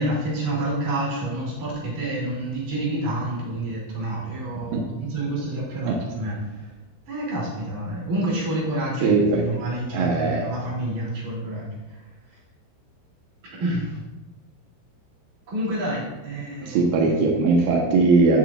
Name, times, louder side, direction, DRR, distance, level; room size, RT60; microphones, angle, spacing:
voice 1, 0.0-6.7 7.1-12.0 13.6-14.0 15.5-16.8 17.0-17.3, right 1 dB, 40° right, -6 dB, 3.8 m, -28 dB
voice 2, 9.0-9.4 9.9-10.5 16.6-18.4, right 3 dB, 85° right, 0 dB, 2.1 m, -19 dB
17.0 x 7.2 x 2.5 m, 1.1 s
omnidirectional pair, 5.9 m